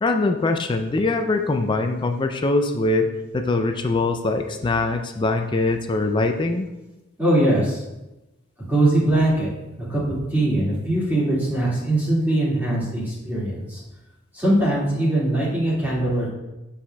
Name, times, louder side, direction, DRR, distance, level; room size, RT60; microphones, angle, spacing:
voice 1, 0.0-6.7, left 2 dB, 25° left, 5 dB, 0.3 m, -22 dB
voice 2, 7.2-7.8 8.7-9.5 9.8-13.8 14.3-16.3, right 1 dB, 10° right, -8 dB, 2.1 m, -21 dB
8.7 x 5.7 x 2.3 m, 1.0 s
head